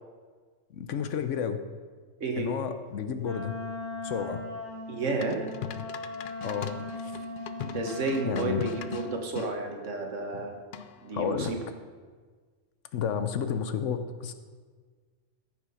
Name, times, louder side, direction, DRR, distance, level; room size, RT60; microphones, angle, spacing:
voice 1, 0.7-1.6 2.4-3.5 4.0-4.4 6.4-6.7 7.0-7.1 8.2-8.7 10.3-10.4 11.1-11.5 12.9-14.3, left 7 dB, 75° left, 9 dB, 1.1 m, -31 dB
voice 2, 2.2-2.5 4.9-5.4 7.6-10.6 11.0-11.6, right 3 dB, 70° right, 3 dB, 1.6 m, -31 dB
Wind instrument woodwind instrument, 3.2-9.3, left 2 dB, 30° left, 2.0 m, -39 dB
sound 1, 5.2-9.5 10.7-11.1, left 8 dB, 55° left, 0.6 m, -40 dB
14.0 x 5.9 x 5.6 m, 1.5 s
omnidirectional pair, 1.3 m